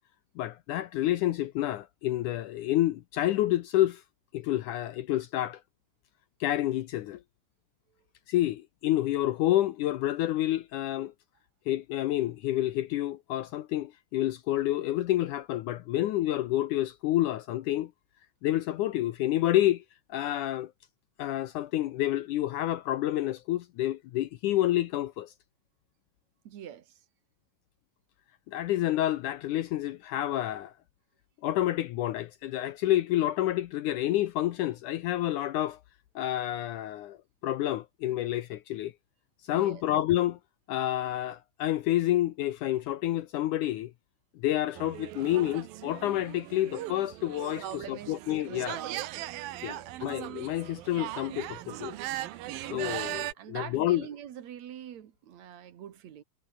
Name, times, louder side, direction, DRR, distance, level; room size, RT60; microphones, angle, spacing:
voice 1, 0.4-4.0 4.3-5.6 6.4-7.2 8.3-11.1 11.7-17.9 18.4-19.8 20.1-20.7 21.2-25.3 28.5-30.7 31.4-35.8 36.2-37.2 37.4-38.9 39.4-40.4 40.7-43.9 44.4-48.8 49.6-52.0 52.6-54.1, left 14 dB, 75° left, 2.1 m, -29 dB
voice 2, 26.4-27.0 39.5-39.8 47.6-49.2 49.6-49.9 53.4-56.2, right 10 dB, 60° right, 2.5 m, -44 dB
sound 1, 44.8-53.3, right 15 dB, 85° right, 2.9 m, -39 dB
omnidirectional pair, 4.0 m